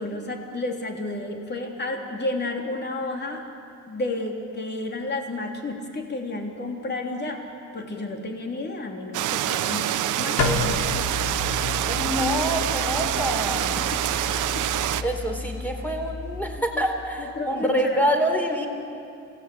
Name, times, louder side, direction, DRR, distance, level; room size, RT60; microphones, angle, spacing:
voice 1, 0.0-3.4 3.9-7.5 7.7-10.7 13.7-14.7 16.7-16.8 17.2-18.0, left 2 dB, 35° left, 2 dB, 3.5 m, -32 dB
sound 1, 9.1-15.0, right 12 dB, 85° right, 1.0 m, -26 dB
sound 2, 10.4-16.6, left 3 dB, 70° left, 3.3 m, -31 dB
voice 2, 11.8-13.8 15.0-18.7, equal, 5° left, 3 dB, 4.1 m, -26 dB
27.0 x 18.0 x 8.7 m, 2.5 s
cardioid pair, 90°, 30 cm